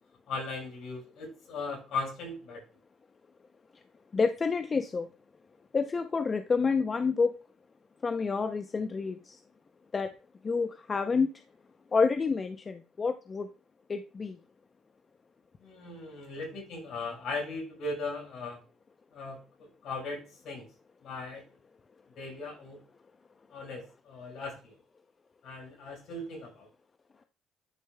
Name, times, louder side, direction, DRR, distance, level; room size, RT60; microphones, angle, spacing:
voice 1, 0.3-2.6 15.6-18.6 19.1-20.7 21.0-21.4 22.2-22.8 23.5-24.8 25.4-26.7, left 3 dB, 70° left, 0 dB, 4.3 m, -38 dB
voice 2, 4.1-5.1 5.7-7.3 8.0-9.4 9.9-10.1 10.4-11.3 11.9-13.5 13.9-14.4, left 4 dB, 35° left, 8 dB, 0.5 m, -28 dB
10.5 x 5.4 x 2.2 m, 0.35 s
supercardioid pair, 75°, 0 cm